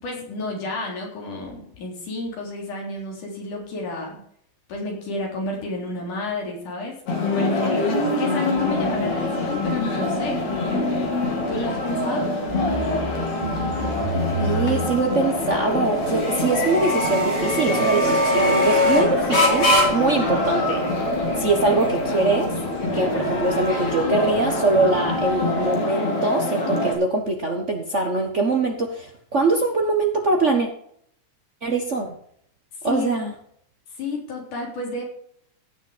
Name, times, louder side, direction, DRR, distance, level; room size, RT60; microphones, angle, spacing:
voice 1, 0.0-4.2 4.7-10.8 11.5-12.3 32.8-33.1 34.0-35.0, left 2 dB, 85° left, -1 dB, 5.1 m, -31 dB
sound 1, 7.1-26.9, left 2 dB, 65° left, 3.5 m, -25 dB
sound 2, 8.6-25.8, left 1 dB, 50° left, 4.7 m, -27 dB
sound 3, 12.5-24.3, right 1 dB, 20° right, 2.8 m, -33 dB
voice 2, 14.4-20.9 21.4-22.5 22.9-30.7 31.6-32.2 32.8-33.3, right 3 dB, 75° right, 3 dB, 0.6 m, -23 dB
16.0 x 7.0 x 5.1 m, 0.66 s
omnidirectional pair, 3.5 m